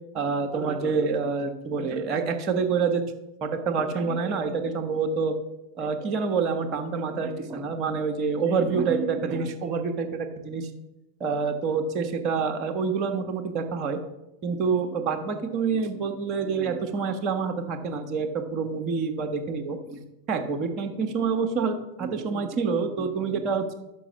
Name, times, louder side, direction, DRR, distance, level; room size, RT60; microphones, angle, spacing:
voice 1, 0.1-3.0 3.4-5.3 5.8-10.7 11.2-14.0 14.4-23.8, right 5 dB, 35° right, 4 dB, 1.2 m, -27 dB
6.2 x 6.1 x 6.9 m, 0.91 s
figure-of-eight pair, 90°, 0 cm